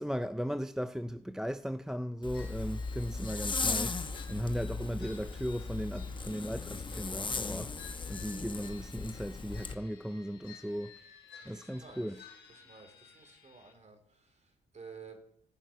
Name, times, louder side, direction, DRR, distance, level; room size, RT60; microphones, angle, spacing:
voice 1, 0.0-7.7 8.1-11.0 11.5-12.2, equal, 5° right, 0.5 m, -37 dB
Zipper (clothing), 2.2-9.8, left 4 dB, 25° left, 0.9 m, -37 dB
sound 1, 2.3-13.7, left 6 dB, 60° left, 3.9 m, -56 dB
voice 2, 11.4-12.1 12.6-14.0 14.7-15.2, right 5 dB, 35° right, 3.8 m, -51 dB
16.5 x 5.9 x 9.2 m
cardioid pair, 90°, 20 cm